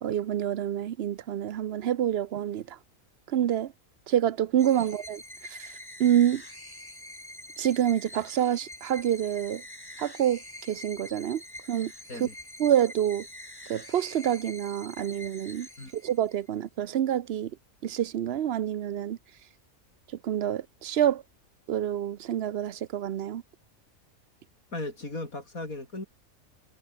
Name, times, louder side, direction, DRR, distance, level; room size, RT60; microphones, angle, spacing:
voice 1, 0.0-2.8 3.3-3.7 4.1-6.4 7.6-9.6 10.0-10.4 10.7-11.4 11.7-11.9 12.2-12.3 12.6-13.3 13.7-15.7 15.9-17.5 17.8-19.2 20.2-21.2 21.7-23.4, right 10 dB, 55° right, 0.8 m, -27 dB
sound 1, 4.6-16.5, left 1 dB, 15° left, 2.8 m, -45 dB
voice 2, 24.7-26.1, left 2 dB, 85° left, 6.7 m, -36 dB
omnidirectional pair, 1.4 m